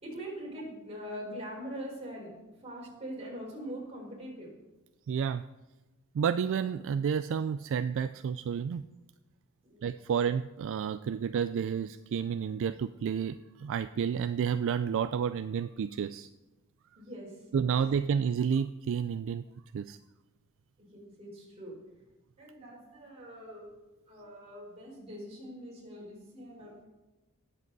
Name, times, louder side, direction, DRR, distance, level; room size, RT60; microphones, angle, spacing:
voice 1, 0.0-2.3 2.6-4.5 9.6-9.9 17.0-17.7 20.8-21.8 22.4-23.7 24.1-26.9, equal, 30° right, -3 dB, 4.3 m, -43 dB
voice 2, 5.1-5.4 6.1-8.8 9.8-16.3 17.5-19.4 19.7-20.0, right 7 dB, 60° right, 12 dB, 0.3 m, -30 dB
18.5 x 7.5 x 4.1 m, 1.1 s
head